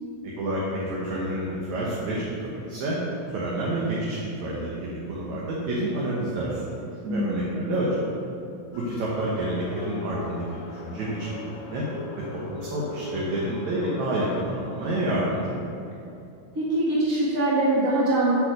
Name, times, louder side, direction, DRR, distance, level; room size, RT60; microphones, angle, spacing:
voice 1, 0.4-3.0 3.3-7.9 8.7-11.8 12.3-15.6, right 1 dB, 60° right, -6 dB, 2.4 m, -29 dB
voice 2, 7.0-7.6 16.5-18.4, right 1 dB, 40° right, -8 dB, 1.2 m, -23 dB
sound 1, 8.7-14.4, left 6 dB, 80° left, 1.5 m, -40 dB
8.4 x 7.1 x 6.6 m, 2.7 s
omnidirectional pair, 4.1 m